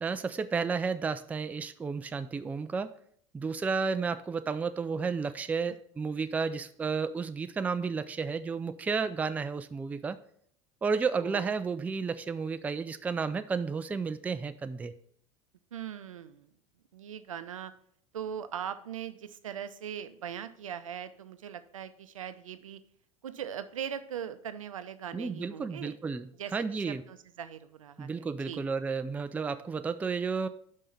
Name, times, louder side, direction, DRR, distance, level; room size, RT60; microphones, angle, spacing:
voice 1, 0.0-2.9 3.3-10.2 10.8-14.9 25.1-27.0 28.0-30.5, right 5 dB, 10° right, 11 dB, 0.3 m, -32 dB
voice 2, 15.7-16.5 16.9-17.7 18.1-22.8 23.2-26.0 26.4-28.6, right 9 dB, 70° right, 12 dB, 0.5 m, -40 dB
5.4 x 5.3 x 5.8 m, 0.63 s
figure-of-eight pair, 75°, 17 cm